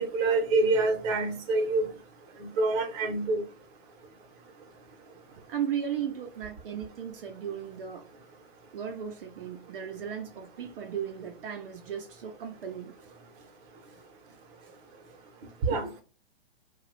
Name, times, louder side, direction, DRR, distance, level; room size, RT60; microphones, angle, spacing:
voice 1, 0.0-1.9 2.6-3.4 15.7-15.9, right 2 dB, 35° right, 1.0 m, -26 dB
voice 2, 5.5-8.1 8.7-13.1 14.6-14.7, right 8 dB, 60° right, 0.7 m, -36 dB
2.8 x 2.4 x 3.2 m
hypercardioid pair, 135°, 30 cm